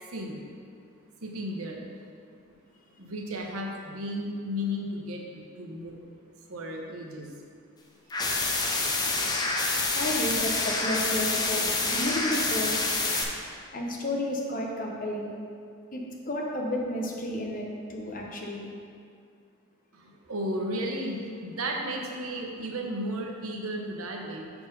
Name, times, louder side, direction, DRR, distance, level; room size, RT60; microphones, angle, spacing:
voice 1, 0.1-0.4 1.2-1.8 3.0-6.0 6.5-7.3 19.9-24.5, equal, 85° right, 1 dB, 0.9 m, -34 dB
sound 1, 8.1-13.2, left 3 dB, 20° left, 0.6 m, -27 dB
voice 2, 9.9-13.0 13.7-15.4 15.9-18.7, left 1 dB, 40° left, -1 dB, 1.0 m, -32 dB
6.7 x 4.5 x 5.5 m, 2.3 s
head